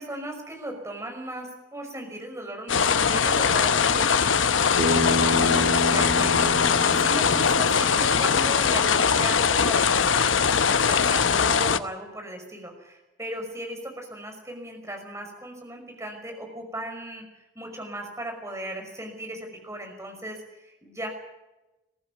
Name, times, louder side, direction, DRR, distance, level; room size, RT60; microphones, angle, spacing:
voice 1, 0.0-17.2 17.5-21.1, right 1 dB, 15° right, 3 dB, 5.6 m, -37 dB
sound 1, 2.7-11.8, left 6 dB, 90° left, 0.9 m, -21 dB
Bass guitar, 4.8-9.0, left 1 dB, 60° right, 1.8 m, -30 dB
21.5 x 15.0 x 9.5 m, 1.0 s
head